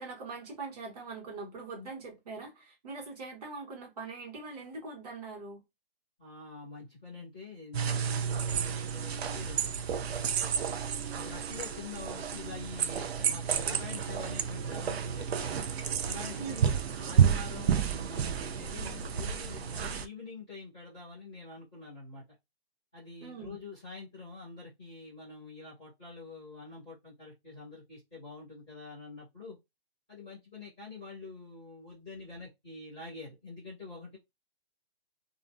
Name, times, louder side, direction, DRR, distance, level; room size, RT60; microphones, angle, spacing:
voice 1, 0.0-5.6 16.3-16.7 23.2-23.6, right 3 dB, 40° right, 1.1 m, -42 dB
voice 2, 6.2-9.8 10.1-10.5 11.1-15.6 16.0-22.2 22.9-29.6 30.1-34.2, left 3 dB, 5° right, 0.3 m, -46 dB
sound 1, 7.7-20.1, right 7 dB, 75° right, 0.5 m, -31 dB
2.4 x 2.1 x 2.5 m
hypercardioid pair, 160°, 32 cm